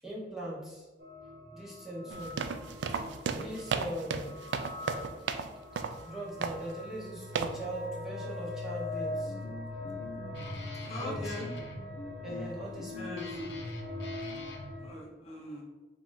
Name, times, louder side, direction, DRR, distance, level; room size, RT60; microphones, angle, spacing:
voice 1, 0.0-0.9 1.5-2.4 2.9-3.1 3.3-4.4 4.9-5.0 6.0-9.4 11.0-11.3 12.2-13.4, right 1 dB, ahead, -6 dB, 0.9 m, -40 dB
sound 1, 1.0-14.9, left 2 dB, 55° right, 0.9 m, -42 dB
sound 2, 2.1-5.5 5.8-6.0 6.4-6.7 7.4-7.6, right 5 dB, 80° right, 0.3 m, -34 dB
Guitar, 8.9-14.7, left 1 dB, 75° left, 0.7 m, -43 dB
voice 2, 10.8-11.5 12.9-13.5 14.8-15.6, left 1 dB, 35° left, -3 dB, 0.8 m, -42 dB
4.4 x 2.5 x 3.9 m, 1.2 s
head